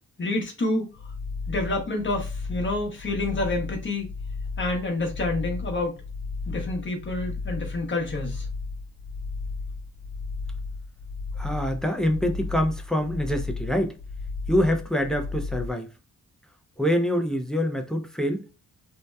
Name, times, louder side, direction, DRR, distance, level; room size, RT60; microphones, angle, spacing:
voice 1, 0.2-0.9 1.5-4.1 4.6-6.0 6.5-8.5, left 2 dB, 30° left, 0.8 m, -28 dB
sound 1, 1.0-15.7, left 4 dB, 70° left, 0.5 m, -34 dB
voice 2, 11.4-14.0 14.5-15.9 16.8-18.4, equal, ahead, 0.3 m, -25 dB
2.7 x 2.1 x 2.2 m
wide cardioid pair, 105°, 36 cm